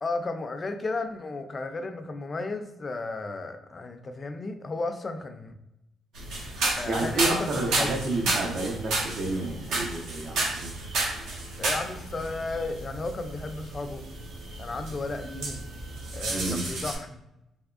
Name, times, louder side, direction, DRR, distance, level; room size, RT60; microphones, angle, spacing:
voice 1, 0.0-5.5 6.8-8.1 11.6-14.0 14.6-15.6 16.1-17.2, left 3 dB, 35° left, 7 dB, 0.4 m, -34 dB
sound 1, 6.1-17.0, right 2 dB, 80° right, 1.0 m, -32 dB
voice 2, 6.9-10.7 16.3-16.6, right 2 dB, 60° right, 0 dB, 0.6 m, -30 dB
3.5 x 2.8 x 2.4 m, 0.88 s
cardioid pair, 90°, 0 cm